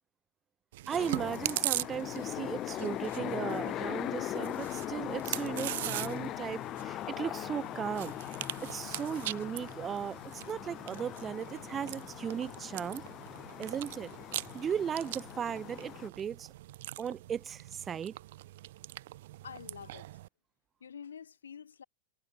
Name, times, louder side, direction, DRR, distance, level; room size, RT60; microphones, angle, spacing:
Chewing mastication, 0.7-20.3, right 16 dB, 55° right, 0.8 m, -42 dB
sound 1, 0.9-16.1, left 14 dB, 35° left, 0.7 m, -40 dB
voice 1, 0.9-8.1 8.6-13.0 13.6-14.1 14.5-16.5 17.0-18.2, right 8 dB, 25° right, 1.2 m, -37 dB
voice 2, 19.4-20.1 20.8-21.8, left 7 dB, 70° left, 3.1 m, -47 dB
figure-of-eight pair, 90°, 0 cm